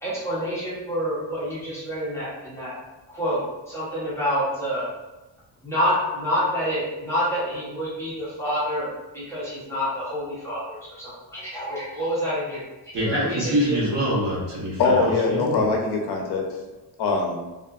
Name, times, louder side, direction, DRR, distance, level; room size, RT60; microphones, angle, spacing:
voice 1, 0.0-2.7 3.1-4.9 5.6-13.8, equal, 5° left, -10 dB, 0.7 m, -28 dB
voice 2, 12.9-15.6, equal, 70° right, -7 dB, 1.2 m, -25 dB
voice 3, 14.8-16.5 17.0-17.4, left 3 dB, 65° left, 0 dB, 0.5 m, -22 dB
2.7 x 2.4 x 2.2 m, 1.1 s
cardioid pair, 175°, 43 cm